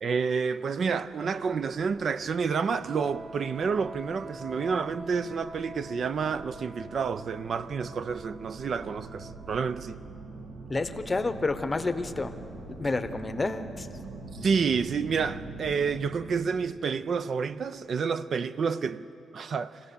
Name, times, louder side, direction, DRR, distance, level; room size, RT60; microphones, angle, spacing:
voice 1, 0.0-10.0 14.3-19.1 19.3-19.8, right 5 dB, 45° right, 0.4 m, -29 dB
sound 1, 1.1-17.8, right 3 dB, 65° right, 1.3 m, -45 dB
Wind instrument woodwind instrument, 2.7-10.0, right 1 dB, 30° right, 1.5 m, -46 dB
voice 2, 10.7-12.3 12.7-13.9, left 3 dB, 20° left, 0.8 m, -29 dB
24.5 x 16.0 x 6.9 m
wide cardioid pair, 150°, 0 cm